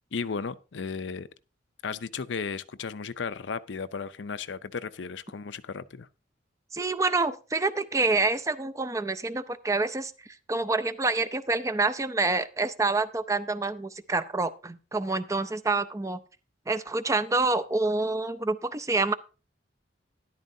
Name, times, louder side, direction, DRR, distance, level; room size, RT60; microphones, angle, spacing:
voice 1, 0.1-1.3 1.8-6.1, left 5 dB, 75° left, 0.6 m, -35 dB
voice 2, 6.7-10.1 10.5-16.2 16.7-19.1, right 3 dB, 15° right, 0.5 m, -27 dB
13.0 x 11.0 x 2.7 m
head